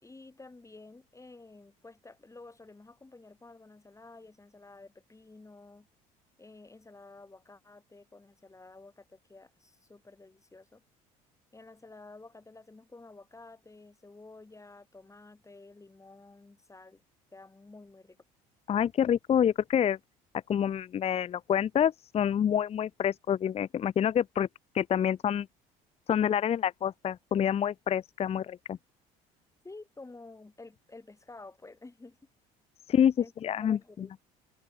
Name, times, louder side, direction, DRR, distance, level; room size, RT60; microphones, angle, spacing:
voice 1, 0.0-5.9 6.4-10.8 11.5-17.0 17.3-18.2 29.6-32.2 33.2-33.3 33.6-34.2, left 3 dB, 15° left, 4.8 m, -51 dB
voice 2, 18.7-20.0 20.5-24.5 24.7-25.5 26.1-28.8 32.9-33.1 33.4-33.8, left 9 dB, 35° left, 0.5 m, -27 dB
hypercardioid pair, 70°, 18 cm